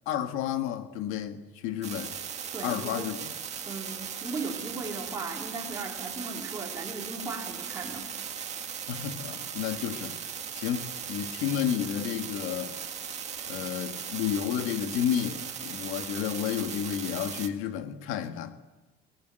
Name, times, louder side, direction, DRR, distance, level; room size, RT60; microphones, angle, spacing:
voice 1, 0.1-2.1 2.6-3.2 8.9-10.2 10.5-12.7 13.5-18.6, left 9 dB, 80° left, 1.9 m, -31 dB
sound 1, 1.8-17.5, right 8 dB, 30° right, 1.8 m, -38 dB
voice 2, 2.5-3.1 3.6-8.2, right 3 dB, 15° right, 3.3 m, -37 dB
23.0 x 19.5 x 9.1 m
cardioid pair, 155°, 21 cm